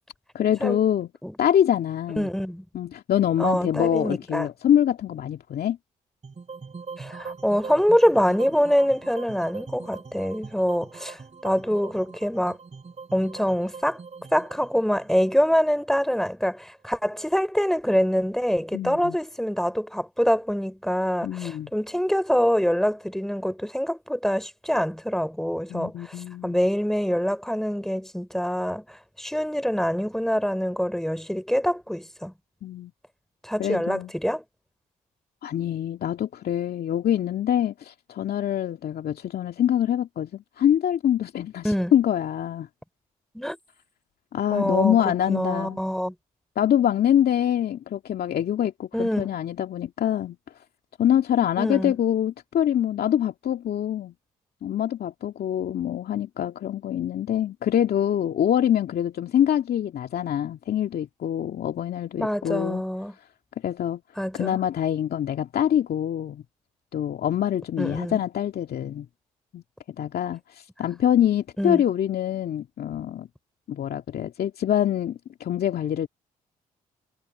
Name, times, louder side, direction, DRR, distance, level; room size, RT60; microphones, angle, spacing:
voice 1, 0.3-1.1 1.4-2.3 2.7-5.8 18.7-19.2 21.2-21.7 25.7-26.6 32.6-32.9 33.6-34.1 35.4-42.7 44.3-45.8 46.6-50.4 51.0-54.1 54.6-62.8 63.6-64.0 64.3-66.4 66.9-69.1 69.5-69.6 70.0-73.3 73.7-76.1, left 10 dB, 60° left, 2.2 m, -25 dB
voice 2, 2.2-2.6 3.4-4.5 7.0-12.6 13.1-14.0 14.3-26.2 26.4-32.3 33.4-34.4 41.6-41.9 43.3-43.6 44.5-46.1 48.9-49.3 51.6-51.9 62.2-63.1 64.2-64.6 67.8-68.2 71.6-71.8, equal, ahead, 3.5 m, -25 dB
sound 1, 6.2-16.4, right 5 dB, 40° right, 7.9 m, -42 dB
hypercardioid pair, 45°, 18 cm